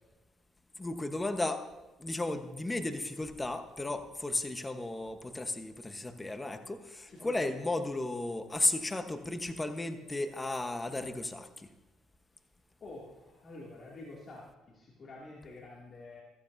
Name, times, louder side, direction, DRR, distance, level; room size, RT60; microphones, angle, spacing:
voice 1, 0.8-1.6 2.0-11.7, left 2 dB, 20° left, 8 dB, 1.1 m, -34 dB
voice 2, 7.1-7.5 12.8-16.2, left 2 dB, 45° left, -4 dB, 2.5 m, -48 dB
14.5 x 14.5 x 2.7 m, 1.1 s
hypercardioid pair, 60°, 0 cm